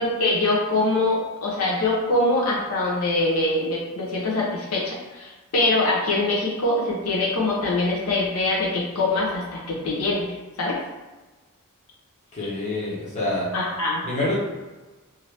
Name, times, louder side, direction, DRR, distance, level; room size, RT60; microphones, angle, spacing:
voice 1, 0.0-10.7 13.5-14.0, left 2 dB, 75° left, -4 dB, 0.7 m, -23 dB
voice 2, 12.3-13.5 14.0-14.3, left 2 dB, 30° left, -7 dB, 0.9 m, -26 dB
2.6 x 2.6 x 3.3 m, 1.2 s
head